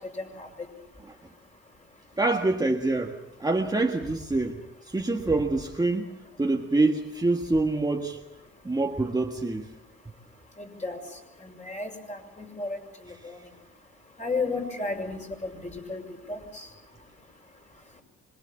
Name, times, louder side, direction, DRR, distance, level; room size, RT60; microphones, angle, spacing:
voice 1, 0.2-0.5 10.8-11.0 11.6-12.8 14.2-16.0 16.3-16.7, left 3 dB, 25° left, 6.3 m, -33 dB
voice 2, 2.2-8.2 8.6-9.7 13.2-13.3, right 2 dB, 15° right, 1.7 m, -26 dB
26.0 x 21.5 x 7.3 m
cardioid pair, 90°, 30 cm